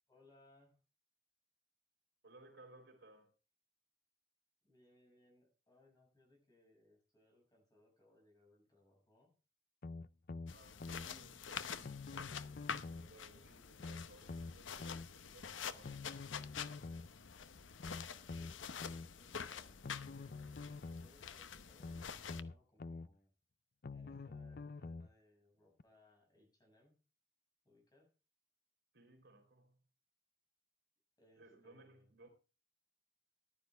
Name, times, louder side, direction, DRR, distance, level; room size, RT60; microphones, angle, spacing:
voice 1, 0.1-0.8 4.6-9.4 17.9-20.5 21.0-23.3 23.9-27.0 27.6-28.1 31.2-32.1, left 1 dB, 20° left, 6.3 m, -69 dB
voice 2, 2.2-3.3 10.4-12.2 12.7-16.0 28.9-29.8 31.4-32.3, right 2 dB, 60° right, 3.9 m, -62 dB
sound 1, 9.8-11.1 11.8-13.1 13.8-15.1 15.8-17.1 17.8-19.1 19.8-21.1 21.8-23.1 23.8-25.1 25.8-25.9, left 3 dB, 50° left, 0.5 m, -47 dB
sound 2, 10.5-22.4, left 7 dB, 80° left, 0.8 m, -48 dB
14.5 x 12.0 x 3.4 m
head